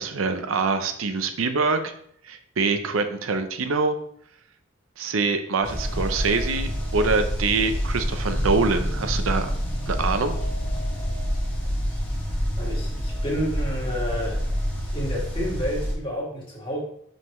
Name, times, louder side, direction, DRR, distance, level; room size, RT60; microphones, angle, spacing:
voice 1, 0.0-1.9 2.2-4.0 5.0-9.5 9.9-10.4, right 4 dB, 85° right, 8 dB, 0.6 m, -24 dB
sound 1, 5.6-16.0, equal, 10° left, 1.4 m, -27 dB
voice 2, 12.6-14.4 14.9-16.8, equal, 25° left, -3 dB, 1.7 m, -30 dB
5.5 x 5.3 x 3.2 m, 0.66 s
head